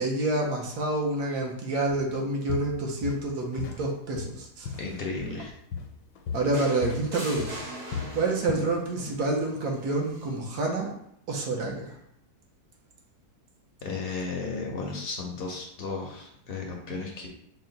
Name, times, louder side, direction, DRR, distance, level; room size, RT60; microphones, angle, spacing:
voice 1, 0.0-4.7 6.3-7.5 8.1-10.9 11.3-12.0, right 2 dB, 75° right, 0 dB, 1.3 m, -28 dB
Walk footsteps, 1.9-2.1 2.5-3.9 4.2-5.5 5.7-9.2 9.5-9.8 10.3-10.4, left 5 dB, 85° left, 1.2 m, -36 dB
voice 2, 4.8-5.5 13.8-17.3, left 4 dB, 60° left, 0 dB, 0.6 m, -34 dB
sound 1, 6.5-8.7 10.1-10.3, right 1 dB, 55° right, 1.3 m, -39 dB
4.4 x 2.1 x 3.8 m, 0.73 s
omnidirectional pair, 1.7 m